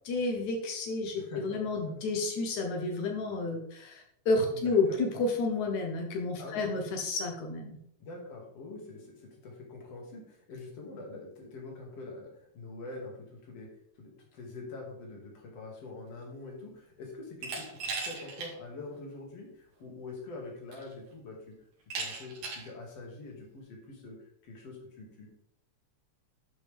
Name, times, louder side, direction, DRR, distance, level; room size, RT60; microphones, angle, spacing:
voice 1, 0.1-7.8, left 3 dB, 75° left, 3 dB, 2.5 m, -31 dB
voice 2, 1.2-1.8 4.5-5.0 6.4-6.7 8.0-13.7 14.0-21.5 21.9-24.2 24.4-25.3, left 3 dB, 55° left, -1 dB, 3.2 m, -45 dB
Glass, 17.4-18.5 18.9-19.0 20.1-20.2 20.7-21.1 21.9-22.7, right 4 dB, 80° right, 3.8 m, -37 dB
11.0 x 6.0 x 3.5 m, 0.72 s
omnidirectional pair, 3.5 m